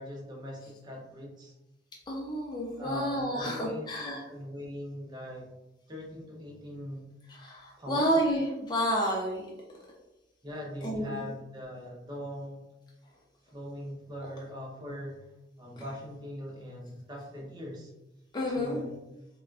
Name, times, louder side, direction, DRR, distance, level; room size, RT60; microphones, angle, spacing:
voice 1, 0.0-1.5 2.8-5.5 5.9-7.1 7.8-8.2 10.4-12.6 13.5-15.3 15.6-17.9 18.5-19.0, left 1 dB, 25° right, -2 dB, 0.6 m, -41 dB
voice 2, 2.1-4.2 7.4-9.4 10.8-11.2 18.3-18.8, equal, 25° left, -3 dB, 0.4 m, -30 dB
3.5 x 2.2 x 2.4 m, 0.96 s
head